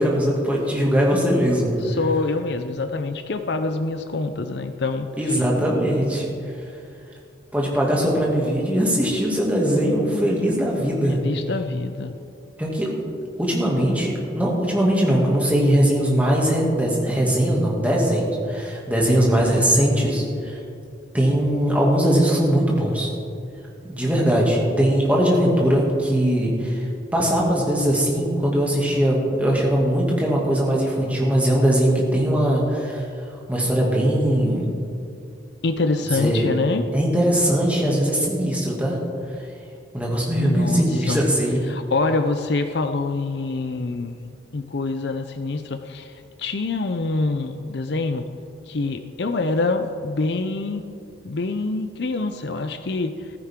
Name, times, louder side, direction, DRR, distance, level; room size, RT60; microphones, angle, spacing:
voice 1, 0.0-1.8 5.2-6.3 7.5-11.2 12.6-12.9 13.4-20.6 21.1-23.1 23.9-26.8 27.1-33.0 33.5-34.7 36.1-36.5 36.9-39.0 39.9-41.6, equal, 10° right, -4 dB, 2.3 m, -20 dB
voice 2, 1.8-5.4 11.1-12.1 35.6-36.8 40.4-41.2 41.7-48.2 48.7-50.8 51.2-53.3, left 3 dB, 60° left, 8 dB, 0.5 m, -26 dB
15.0 x 14.5 x 3.7 m, 2.5 s
head